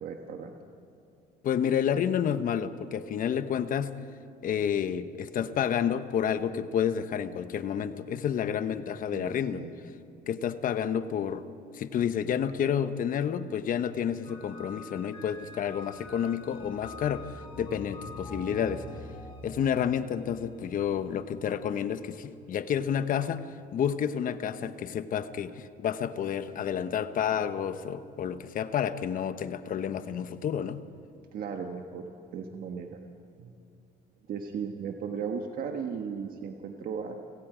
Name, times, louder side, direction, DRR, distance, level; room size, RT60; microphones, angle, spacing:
voice 1, 0.0-0.6 9.1-9.7 29.9-30.3 31.3-32.0 32.3-33.0 33.4-33.5 34.3-37.2, right 6 dB, 60° right, 4 dB, 1.4 m, -36 dB
voice 2, 1.4-4.0 4.4-9.6 10.3-11.4 11.7-18.8 19.4-23.4 23.7-30.8, left 8 dB, 55° left, 11 dB, 1.0 m, -30 dB
sound 1, 14.2-21.5, left 2 dB, 30° left, 4.4 m, -45 dB
29.5 x 17.5 x 5.1 m, 2.6 s
cardioid pair, 110°, 17 cm